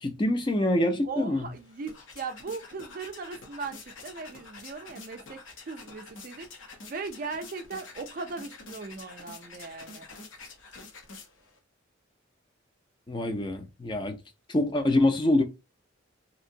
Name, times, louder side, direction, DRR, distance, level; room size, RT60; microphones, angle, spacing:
voice 1, 0.0-1.5 13.1-14.2 14.5-15.4, left 1 dB, 25° left, 0.4 m, -25 dB
voice 2, 1.1-5.4 5.7-6.5 6.9-10.0, right 4 dB, 45° right, 0.4 m, -38 dB
sound 1, 1.5-11.6, left 4 dB, 75° left, 0.8 m, -47 dB
2.8 x 2.6 x 2.6 m
head